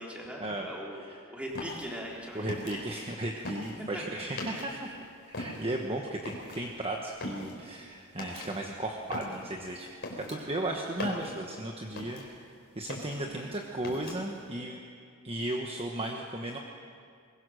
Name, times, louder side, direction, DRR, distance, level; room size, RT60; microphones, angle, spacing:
voice 1, 0.0-1.0 1.3-2.6 3.4-3.5 3.8-4.0 4.5-4.6 13.1-13.5, equal, 5° right, -3 dB, 3.6 m, -40 dB
sound 1, 1.5-4.9 5.2-12.5 12.8-14.4, left 2 dB, 55° left, 3.9 m, -41 dB
voice 2, 2.3-4.9 5.3-9.9 10.2-12.2 12.7-14.8 15.2-16.6, right 1 dB, 25° right, 1 dB, 1.2 m, -35 dB
22.5 x 21.0 x 6.4 m, 2.3 s
head